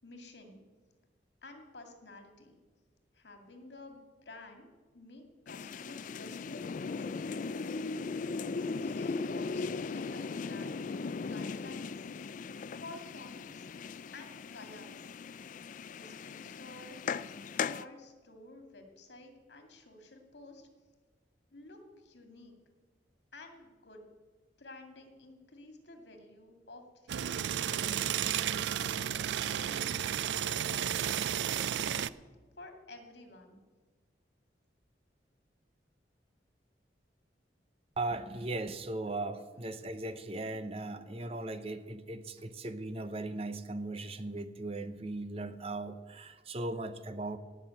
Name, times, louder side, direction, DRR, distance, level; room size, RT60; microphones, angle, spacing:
voice 1, 0.0-0.6 1.4-2.6 3.1-7.6 8.8-12.1 12.8-13.7 14.1-15.1 15.9-17.0 17.5-20.7 21.5-22.5 23.3-24.1 24.6-28.2 29.4-30.1 30.4-31.1 31.4-32.0 32.6-33.6, left 2 dB, 75° left, 4 dB, 2.2 m, -52 dB
sound 1, 5.5-17.8, left 4 dB, 45° left, 0.3 m, -38 dB
sound 2, 27.1-32.1, right 10 dB, 80° right, 0.4 m, -32 dB
voice 2, 38.0-47.4, right 2 dB, 35° right, 11 dB, 0.7 m, -38 dB
17.5 x 6.1 x 8.8 m, 1.3 s
head